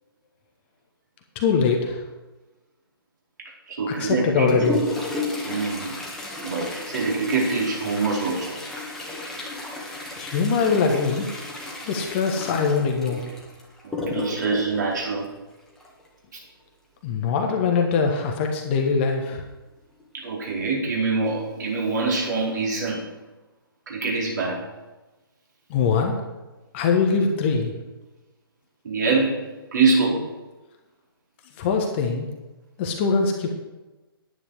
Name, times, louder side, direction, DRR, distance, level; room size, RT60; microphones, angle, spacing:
voice 1, 1.3-2.0 3.9-4.8 10.2-11.2 11.9-13.2 17.0-19.4 25.7-26.2 26.7-27.7 31.6-32.3 32.8-33.5, left 5 dB, 30° left, 2 dB, 1.4 m, -22 dB
voice 2, 3.7-4.6 5.4-6.0 6.4-8.6 13.8-15.3 20.1-23.0 23.9-24.6 28.8-30.2, right 4 dB, 50° right, -4 dB, 4.6 m, -24 dB
Toilet flush, 4.1-16.1 17.9-18.0 18.4-18.5 19.2-19.3 20.0-20.2 20.7-20.8, left 2 dB, 5° left, 1.9 m, -33 dB
10.5 x 10.0 x 4.9 m, 1.1 s
figure-of-eight pair, 130°, 13 cm